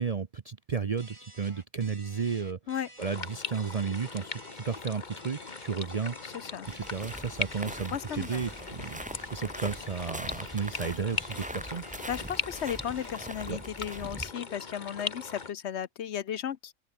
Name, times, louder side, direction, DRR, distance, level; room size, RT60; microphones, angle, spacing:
voice 1, 0.0-2.6 3.0-9.0 9.3-11.8 13.5-13.6, right 6 dB, 40° right, 0.6 m, -33 dB
sound 1, 1.0-13.4, right 1 dB, 20° right, 5.3 m, -52 dB
sound 2, 3.0-15.5, left 4 dB, 35° left, 1.5 m, -40 dB
voice 2, 6.2-6.7 7.9-8.4 12.1-16.7, left 9 dB, 60° left, 0.9 m, -35 dB
sound 3, 6.6-14.3, right 1 dB, 5° right, 1.0 m, -42 dB
open air
omnidirectional pair, 1.4 m